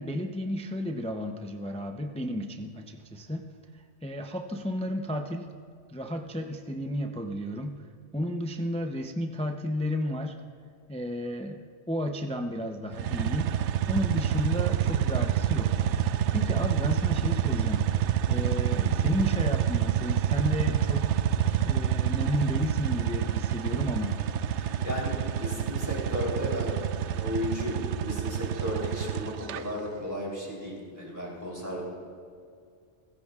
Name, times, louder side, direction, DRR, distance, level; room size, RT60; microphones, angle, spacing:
voice 1, 0.0-3.5 4.0-5.5 5.9-7.8 8.1-10.4 10.9-13.5 13.9-15.8 16.3-17.9 18.3-21.2 21.6-24.2, left 1 dB, 10° left, 5 dB, 0.4 m, -32 dB
sound 1, 12.9-29.6, right 10 dB, 80° right, 0.9 m, -27 dB
voice 2, 24.5-31.8, left 1 dB, 15° right, -3 dB, 3.3 m, -34 dB
20.5 x 16.0 x 2.4 m, 2.3 s
omnidirectional pair, 1.2 m